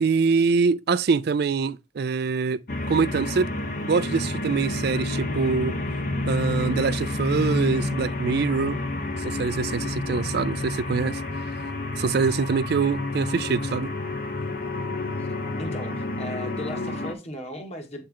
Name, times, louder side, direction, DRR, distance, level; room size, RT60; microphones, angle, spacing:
voice 1, 0.0-2.6 2.9-3.5 3.8-5.7 6.3-8.8 9.2-11.2 12.0-13.9, right 5 dB, 55° right, 0.4 m, -24 dB
sound 1, 2.7-17.1, left 2 dB, 50° left, 0.9 m, -29 dB
voice 2, 15.6-18.1, left 1 dB, 35° left, 1.4 m, -37 dB
8.6 x 3.3 x 3.6 m
head